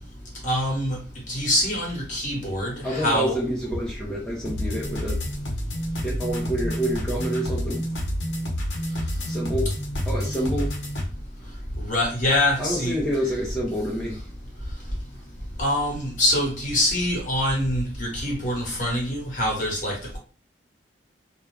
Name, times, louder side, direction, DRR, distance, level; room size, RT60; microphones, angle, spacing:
voice 1, 0.4-1.0 1.3-3.4 11.8-13.0 15.6-20.0, left 1 dB, 40° left, -2 dB, 1.1 m, -24 dB
voice 2, 2.8-5.2 6.0-7.8 9.2-9.7 10.1-10.7 12.6-14.2, equal, 5° left, -6 dB, 0.5 m, -28 dB
sound 1, 4.4-11.1, equal, 75° left, 0.8 m, -29 dB
2.4 x 2.2 x 3.2 m, 0.36 s
head